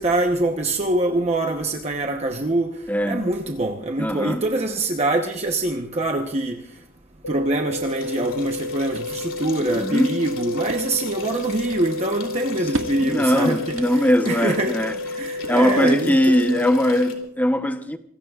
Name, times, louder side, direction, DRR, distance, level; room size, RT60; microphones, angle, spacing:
voice 1, 0.0-2.7 3.0-6.6 7.3-13.6 13.9-14.9 15.2-16.4 16.8-17.0, right 2 dB, 30° right, 1.0 m, -24 dB
voice 2, 2.9-3.3 4.0-4.4 9.7-10.1 13.0-15.0 15.3-18.0, left 1 dB, 10° left, 0.8 m, -20 dB
sound 1, 7.2-17.3, left 2 dB, 90° left, 0.5 m, -31 dB
sound 2, 7.9-17.2, left 4 dB, 65° left, 3.2 m, -40 dB
sound 3, 8.5-16.0, right 1 dB, 75° right, 1.8 m, -39 dB
26.5 x 20.0 x 2.4 m
head